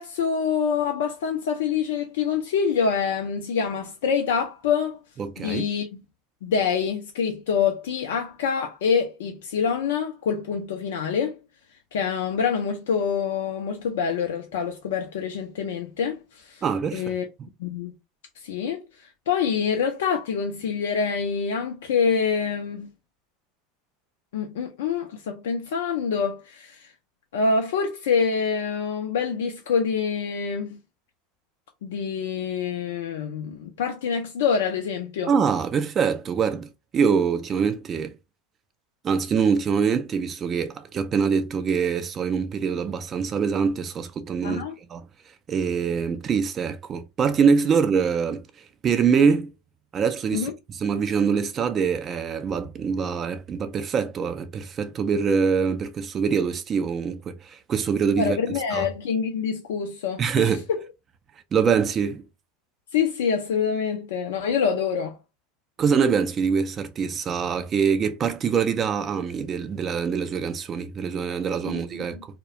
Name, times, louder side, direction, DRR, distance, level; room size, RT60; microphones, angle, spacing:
voice 1, 0.0-5.0 5.4-6.0 6.4-11.4 11.9-16.6 16.9-17.3 17.6-17.9 18.4-22.9 24.3-26.9 27.3-30.8 31.8-35.3 44.4-44.7 50.3-50.5 58.2-60.5 62.9-65.2 71.7-72.2, left 6 dB, 75° left, 0.4 m, -26 dB
voice 2, 5.2-5.7 16.6-17.0 35.3-38.1 39.0-44.6 44.9-45.0 45.5-48.4 48.8-49.5 49.9-58.4 58.7-58.9 60.2-60.6 61.5-62.2 65.8-72.2, right 6 dB, 35° right, 0.3 m, -24 dB
2.3 x 2.0 x 2.7 m
hypercardioid pair, 85°, 0 cm